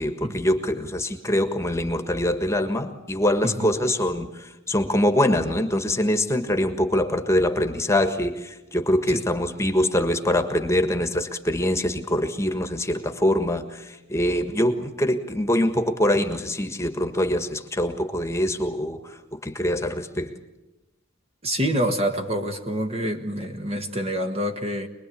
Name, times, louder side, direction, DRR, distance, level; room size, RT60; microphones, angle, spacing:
voice 1, 0.0-20.3, left 1 dB, 15° left, 7 dB, 1.5 m, -24 dB
voice 2, 21.4-24.9, equal, 30° right, 5 dB, 1.6 m, -26 dB
26.0 x 21.0 x 8.5 m, 0.99 s
head